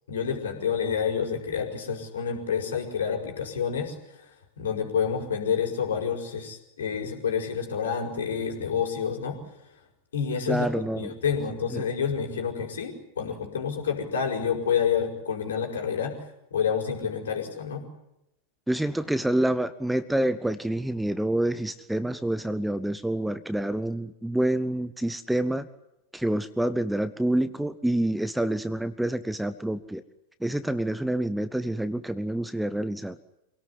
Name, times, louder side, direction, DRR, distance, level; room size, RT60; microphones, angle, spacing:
voice 1, 0.1-4.2 4.6-9.4 10.1-10.7 11.0-16.2 16.5-17.8, left 7 dB, 65° left, 3 dB, 5.3 m, -28 dB
voice 2, 10.5-11.1 11.7-11.8 18.7-25.7 26.1-30.0 30.4-33.2, right 1 dB, 5° right, 14 dB, 0.9 m, -27 dB
27.0 x 18.0 x 9.9 m, 0.89 s
figure-of-eight pair, 90°, 0 cm